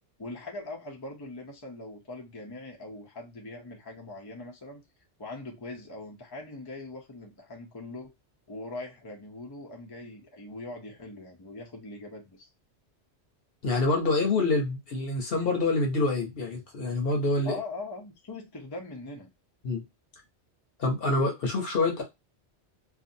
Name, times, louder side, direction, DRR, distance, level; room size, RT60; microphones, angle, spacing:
voice 1, 0.2-4.8 5.2-8.1 8.5-12.5 17.4-19.3, left 2 dB, 30° left, 0.5 m, -41 dB
voice 2, 13.6-17.5 19.6-19.8 20.8-22.0, left 3 dB, 60° left, 1.0 m, -26 dB
2.6 x 2.4 x 2.6 m
omnidirectional pair, 1.2 m